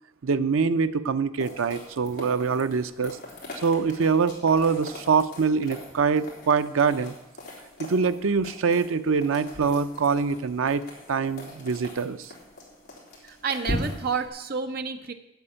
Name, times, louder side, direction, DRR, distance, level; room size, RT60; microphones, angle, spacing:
voice 1, 0.2-3.2 3.6-7.1 7.8-10.8 11.1-12.3, right 5 dB, 85° right, 11 dB, 0.5 m, -24 dB
sound 1, 1.4-14.3, left 1 dB, 50° left, 3.6 m, -40 dB
voice 2, 13.2-15.1, right 5 dB, 50° right, 7 dB, 0.9 m, -30 dB
8.2 x 7.7 x 8.8 m, 0.91 s
head